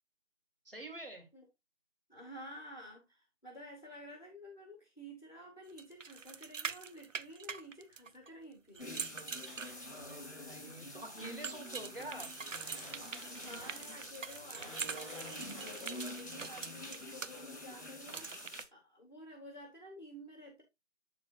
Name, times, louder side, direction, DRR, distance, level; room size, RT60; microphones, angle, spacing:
voice 1, 0.7-1.3 10.0-12.3, right 1 dB, 45° right, 1.8 m, -47 dB
voice 2, 2.1-8.9 13.2-20.6, equal, 35° left, 1.8 m, -52 dB
sound 1, 5.8-8.3 8.8-10.2 11.4-17.3 18.1-18.6, right 6 dB, 85° right, 0.6 m, -44 dB
sound 2, 8.8-18.7, left 1 dB, 65° left, 2.3 m, -47 dB
sound 3, 9.4-16.0, equal, 20° right, 3.6 m, -56 dB
8.4 x 6.5 x 2.3 m
figure-of-eight pair, 175°, 37 cm